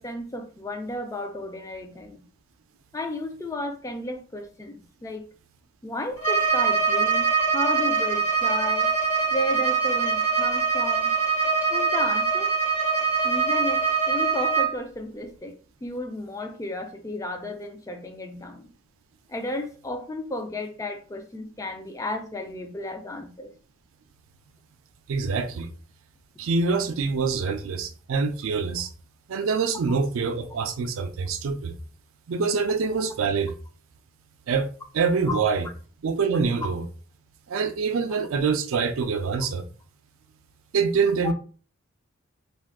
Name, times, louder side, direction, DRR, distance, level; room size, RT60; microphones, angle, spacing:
voice 1, 0.0-2.2 2.9-5.3 5.8-8.9 9.3-11.1 11.7-12.5 13.2-15.5 15.8-18.7 19.3-23.5 35.3-35.4 36.6-36.7 41.2-41.3, left 1 dB, 15° left, 0.3 m, -33 dB
Bowed string instrument, 6.2-14.8, right 5 dB, 55° left, 1.1 m, -23 dB
voice 2, 25.1-25.7 26.4-28.9 29.3-31.7 32.3-33.5 34.5-35.7 36.0-36.9 37.5-39.7 40.7-41.3, right 5 dB, 70° right, 0.4 m, -25 dB
2.5 x 2.3 x 3.5 m
head